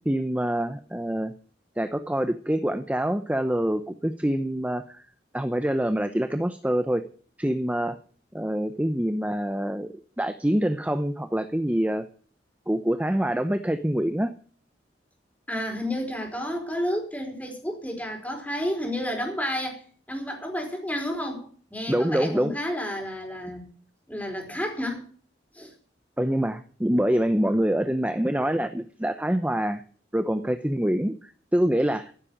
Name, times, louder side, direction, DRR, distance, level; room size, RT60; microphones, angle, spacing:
voice 1, 0.1-1.3 1.8-5.0 5.3-7.0 7.4-8.0 8.3-12.1 12.7-14.3 21.9-22.5 26.2-29.8 30.1-32.1, right 1 dB, 10° right, 9 dB, 0.7 m, -25 dB
voice 2, 15.5-19.8 20.1-23.7 24.1-25.0 25.5-25.7, equal, 10° left, 2 dB, 4.7 m, -31 dB
15.0 x 7.6 x 8.7 m, 0.43 s
head